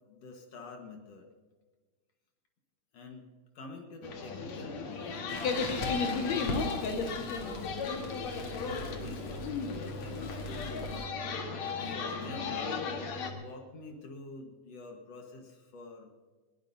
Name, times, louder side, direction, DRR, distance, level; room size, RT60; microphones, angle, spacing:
voice 1, 0.1-1.3 2.9-3.2 3.5-8.1 8.6-11.1 11.6-12.7 13.3-16.1, left 3 dB, 80° left, 2 dB, 1.4 m, -47 dB
sound 1, 4.0-13.3, left 4 dB, 60° left, 2.0 m, -35 dB
Crackle, 5.3-11.1, left 2 dB, 40° left, 3.5 m, -41 dB
21.0 x 18.5 x 2.7 m, 1.4 s
omnidirectional pair, 5.2 m